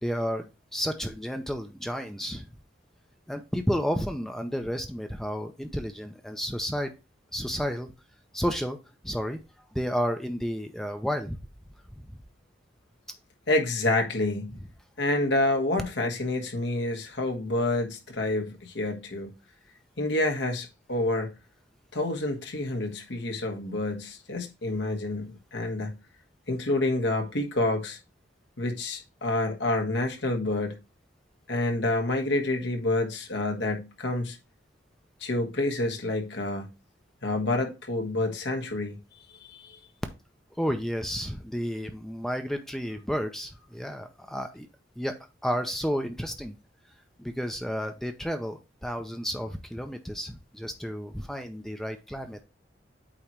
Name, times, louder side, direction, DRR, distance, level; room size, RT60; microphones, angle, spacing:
voice 1, 0.0-2.5 3.3-6.9 7.3-7.9 8.3-8.8 9.0-9.4 9.7-11.4 12.1-12.2 40.6-44.7 45.0-45.1 45.4-46.6 47.2-52.4, equal, ahead, 0.6 m, -31 dB
voice 2, 13.5-14.6 15.0-19.3 20.0-21.3 21.9-26.0 26.5-28.0 28.6-30.8 31.5-34.4 35.2-36.7 37.2-39.0 39.5-39.8, left 2 dB, 65° left, 1.4 m, -28 dB
8.6 x 3.0 x 4.5 m
head